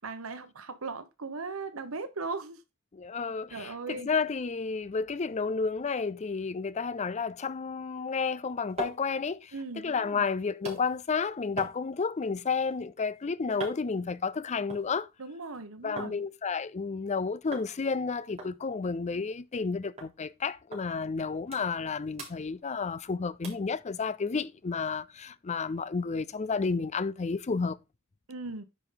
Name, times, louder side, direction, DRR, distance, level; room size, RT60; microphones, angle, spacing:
voice 1, 0.0-2.6 3.5-4.1 9.5-10.2 15.2-16.2 28.3-28.7, right 3 dB, 80° right, 1.2 m, -38 dB
voice 2, 2.9-15.1 15.8-27.8, left 5 dB, 35° left, 0.5 m, -31 dB
sound 1, 8.3-16.2 16.5-17.1 17.5-17.7 18.0-18.1 18.4-19.7 20.0-20.1 20.7-20.8 21.2-21.9 22.1-23.1 23.4-23.7 24.2-24.3, right 2 dB, 30° right, 3.6 m, -44 dB
9.8 x 5.1 x 3.9 m
head